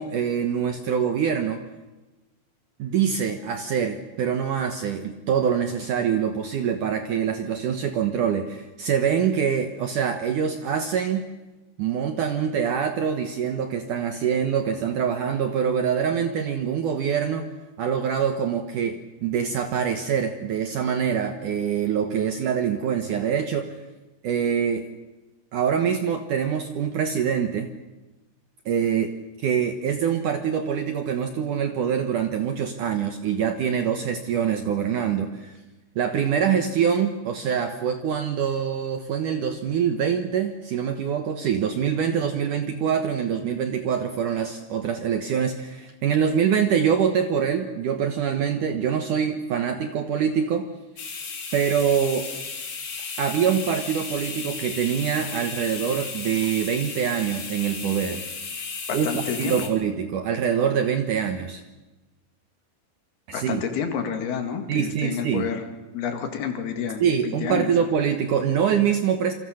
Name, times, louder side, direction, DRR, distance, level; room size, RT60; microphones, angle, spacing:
voice 1, 0.0-1.6 2.8-11.3 11.8-17.5 17.8-23.8 24.2-24.9 25.5-27.7 28.7-35.5 36.0-50.7 51.5-52.3 53.2-58.2 58.9-61.6 63.3-63.6 64.7-65.5 67.0-69.3, right 7 dB, 65° right, 6 dB, 2.1 m, -24 dB
sound 1, 51.0-59.7, left 5 dB, 40° left, 3.5 m, -34 dB
voice 2, 58.9-59.7 63.3-65.7 65.9-67.7, left 7 dB, 65° left, 5 dB, 3.9 m, -29 dB
28.0 x 25.0 x 6.5 m, 1.1 s
omnidirectional pair, 5.0 m